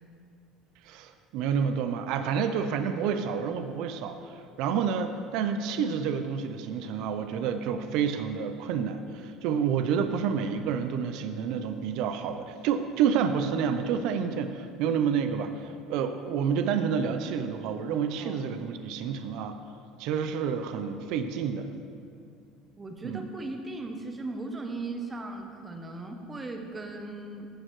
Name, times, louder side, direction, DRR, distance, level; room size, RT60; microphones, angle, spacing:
voice 1, 0.8-19.6 20.0-21.7 23.0-23.2, right 7 dB, 60° right, 8 dB, 0.5 m, -29 dB
voice 2, 22.8-27.5, right 2 dB, 15° right, 4 dB, 0.7 m, -38 dB
14.0 x 6.4 x 3.1 m, 2.4 s
cardioid pair, 160°, 0 cm